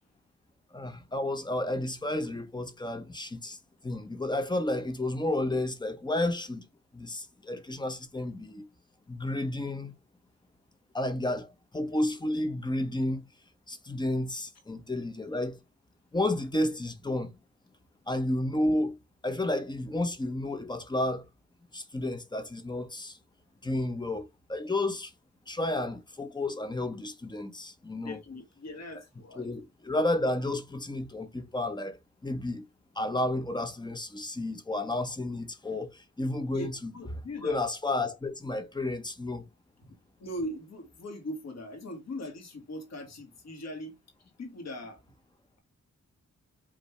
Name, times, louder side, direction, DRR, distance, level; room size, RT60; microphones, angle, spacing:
voice 1, 0.7-3.6 3.8-6.6 6.9-8.7 9.1-9.9 10.9-13.2 13.7-15.6 16.1-17.3 18.1-19.0 19.2-21.2 21.7-23.2 23.6-25.1 25.5-28.2 29.4-32.7 33.0-36.9 37.4-39.4, left 1 dB, 15° left, 0.7 m, -31 dB
voice 2, 28.0-29.5 36.5-37.6 39.9-44.0 44.4-45.0, left 1 dB, 65° left, 1.5 m, -40 dB
5.3 x 2.7 x 3.1 m
wide cardioid pair, 140°, 29 cm